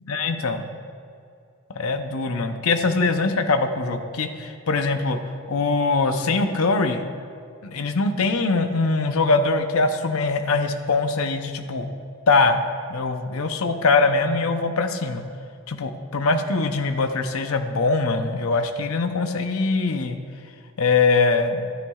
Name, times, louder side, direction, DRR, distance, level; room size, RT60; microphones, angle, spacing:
voice 1, 0.1-0.7 1.8-5.2 5.5-7.1 7.6-11.9 12.3-12.6 12.9-15.2 15.7-20.2 20.8-21.7, left 3 dB, 85° left, 7 dB, 0.7 m, -22 dB
12.5 x 9.9 x 2.4 m, 2.4 s
head